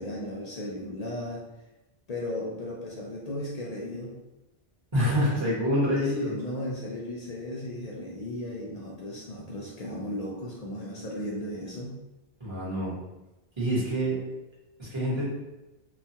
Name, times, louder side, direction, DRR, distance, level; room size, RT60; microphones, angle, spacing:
voice 1, 0.0-1.4 2.1-4.1 5.9-12.0, left 1 dB, 55° left, -3 dB, 0.5 m, -36 dB
voice 2, 4.9-6.3 12.4-13.0 13.6-14.2 14.8-15.2, equal, 30° right, -7 dB, 1.0 m, -26 dB
2.9 x 2.2 x 2.7 m, 1.0 s
omnidirectional pair, 1.0 m